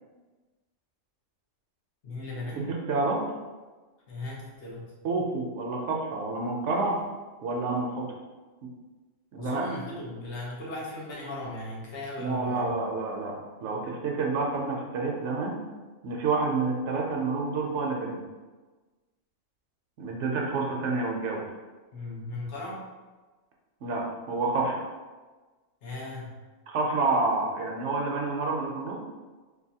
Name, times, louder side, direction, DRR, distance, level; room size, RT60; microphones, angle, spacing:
voice 1, 2.0-2.7 4.1-4.9 9.4-12.8 21.9-22.8 25.8-26.4, left 2 dB, 65° left, -3 dB, 1.1 m, -37 dB
voice 2, 2.6-3.2 5.0-7.0 7.4-8.1 9.3-9.7 12.2-15.6 16.0-18.2 20.0-21.4 23.8-24.9 26.7-29.0, right 3 dB, 70° right, -1 dB, 0.9 m, -28 dB
3.9 x 2.5 x 2.7 m, 1.3 s
omnidirectional pair, 1.3 m